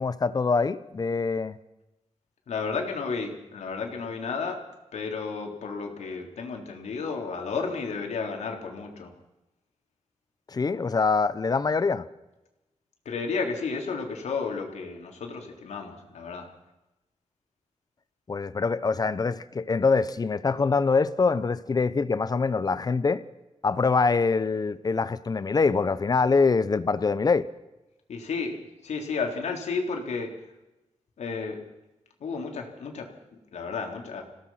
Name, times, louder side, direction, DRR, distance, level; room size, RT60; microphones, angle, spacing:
voice 1, 0.0-1.6 10.5-12.1 18.3-23.2 23.6-27.5, left 4 dB, 35° left, 0.9 m, -24 dB
voice 2, 2.5-4.6 4.9-9.1 13.1-16.5 28.1-30.4 31.2-31.6 32.2-34.2, left 4 dB, 85° left, 3.8 m, -32 dB
27.5 x 17.0 x 5.9 m
wide cardioid pair, 125°, 11 cm